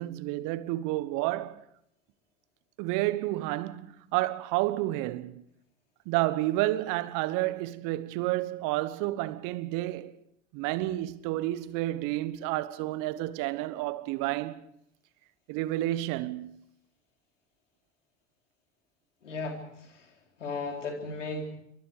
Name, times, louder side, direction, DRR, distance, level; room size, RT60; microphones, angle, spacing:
voice 1, 0.0-1.6 2.8-5.4 6.0-10.1 10.5-14.6 15.5-16.6, right 16 dB, 60° right, 1.4 m, -30 dB
voice 2, 19.2-20.1 20.4-21.6, left 3 dB, 85° left, 4.1 m, -36 dB
27.5 x 24.5 x 4.9 m
figure-of-eight pair, 60°, 36 cm